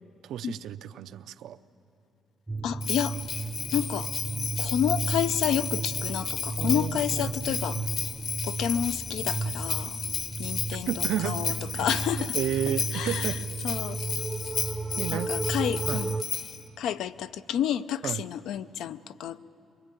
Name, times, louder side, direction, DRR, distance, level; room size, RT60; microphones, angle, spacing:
voice 1, 0.2-1.6 6.6-7.8 10.9-11.9 12.2-13.4 14.9-15.3 15.9-16.1 18.0-18.2, right 10 dB, 85° right, 11 dB, 0.6 m, -33 dB
sound 1, 2.5-16.2, right 3 dB, 10° right, 0.6 m, -34 dB
voice 2, 2.6-3.2 3.7-4.1 4.6-7.8 8.4-10.0 10.4-12.4 12.9-13.3 13.6-14.0 15.1-16.1 16.8-19.4, left 10 dB, 80° left, 13 dB, 0.5 m, -30 dB
Bell, 2.8-16.6, left 6 dB, 60° left, 1.3 m, -33 dB
23.5 x 22.0 x 9.1 m, 2.7 s
cardioid pair, 155°, 0 cm